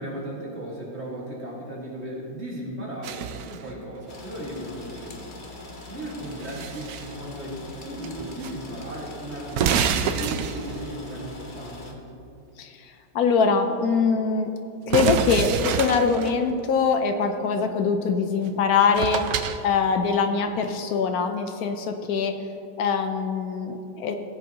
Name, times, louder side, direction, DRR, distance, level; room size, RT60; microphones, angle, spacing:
voice 1, 0.0-5.3 5.9-12.0, right 1 dB, 35° right, -4 dB, 1.9 m, -36 dB
sound 1, 3.0-3.7 6.1-7.1 8.0-8.5 8.8-8.9 9.5-10.9 14.9-16.4 18.5-18.6 18.9-19.6, right 7 dB, 75° right, 0.8 m, -27 dB
sound 2, 4.1-11.9, left 2 dB, 40° left, 0.7 m, -42 dB
voice 2, 12.6-14.5 14.9-19.3 19.6-22.3 22.8-24.1, left 5 dB, 75° left, 6 dB, 0.8 m, -23 dB
16.5 x 7.6 x 2.8 m, 2.6 s
omnidirectional pair, 2.1 m